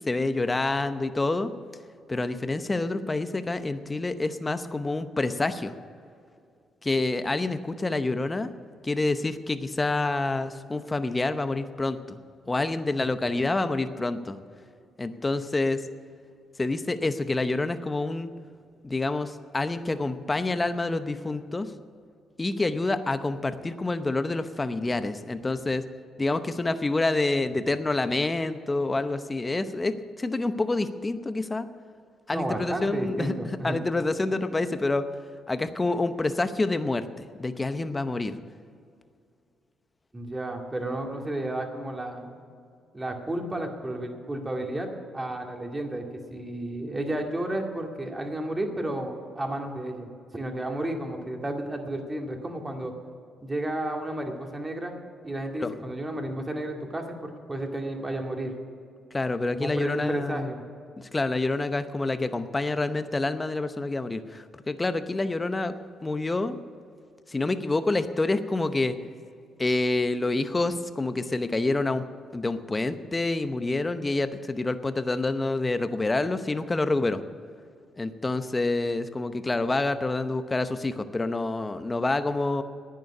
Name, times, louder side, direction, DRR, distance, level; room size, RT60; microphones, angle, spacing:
voice 1, 0.0-1.5 2.1-5.7 6.8-8.5 8.8-12.2 12.5-14.4 15.0-15.8 16.6-18.3 18.8-21.7 22.4-25.8 26.2-31.7 32.3-35.1 35.5-38.4 55.6-55.7 59.1-60.5 61.0-65.7 66.0-66.6 67.3-69.0 69.6-72.0 72.3-77.2 78.0-82.6, left 2 dB, 20° left, 10 dB, 0.8 m, -27 dB
voice 2, 32.3-33.8 40.1-42.4 42.9-44.9 45.1-46.0 46.3-52.9 53.4-55.0 55.2-58.5 59.6-60.6, right 1 dB, 20° right, 2 dB, 2.1 m, -32 dB
11.0 x 9.2 x 9.8 m, 2.3 s
cardioid pair, 90°, 0 cm